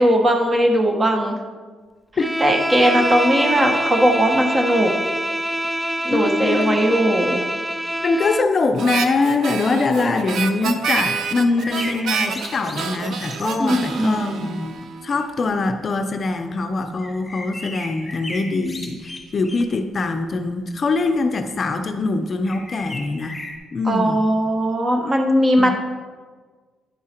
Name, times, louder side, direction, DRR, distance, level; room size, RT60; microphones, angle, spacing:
voice 1, 0.0-1.4 2.4-4.9 6.0-7.4 13.6-14.5 23.9-25.7, equal, 25° right, 3 dB, 1.2 m, -18 dB
Bowed string instrument, 2.2-8.6, equal, 5° right, 0.3 m, -25 dB
voice 2, 6.1-7.0 8.0-14.8 15.0-23.4 23.7-24.2 25.6-25.7, left 3 dB, 40° left, 6 dB, 0.6 m, -23 dB
Harmonica, 8.8-15.3, right 6 dB, 70° right, 0.6 m, -28 dB
sound 1, 11.6-13.7 15.1-15.2 15.5-15.6 17.0-19.8 20.1-20.4 21.1-21.2 22.4-23.6, left 2 dB, 15° left, 1.5 m, -36 dB
10.0 x 4.7 x 4.4 m, 1.5 s
cardioid pair, 90°, 0 cm